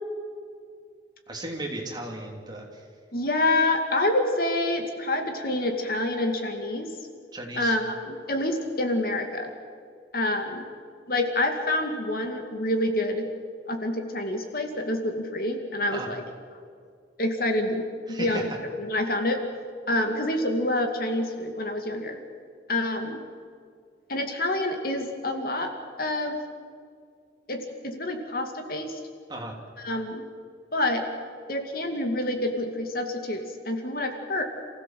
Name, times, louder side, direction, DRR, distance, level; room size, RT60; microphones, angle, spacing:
voice 1, 1.3-2.8 7.3-7.8 15.9-16.1 18.1-18.6 29.3-29.5, right 1 dB, 25° right, 0 dB, 3.0 m, -35 dB
voice 2, 3.1-6.9 7.6-9.5 10.1-10.6 11.1-13.3 13.7-16.2 17.2-17.8 18.1-18.5 18.8-19.4 19.9-22.2 22.7-23.2 24.1-25.7 26.0-26.3 27.5-28.9 29.8-30.2 30.7-31.0 31.5-34.4, left 1 dB, 55° left, 5 dB, 2.3 m, -27 dB
28.0 x 16.0 x 7.6 m, 2.2 s
head